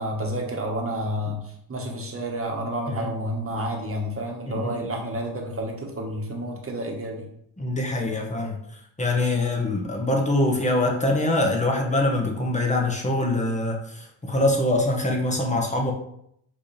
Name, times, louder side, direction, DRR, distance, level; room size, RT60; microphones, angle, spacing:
voice 1, 0.0-1.4 1.7-7.3, right 1 dB, 30° right, 1 dB, 1.4 m, -30 dB
voice 2, 7.6-8.6 9.0-15.9, left 2 dB, 15° left, 0 dB, 1.3 m, -24 dB
5.1 x 3.1 x 3.4 m, 0.74 s
supercardioid pair, 65°, 45 cm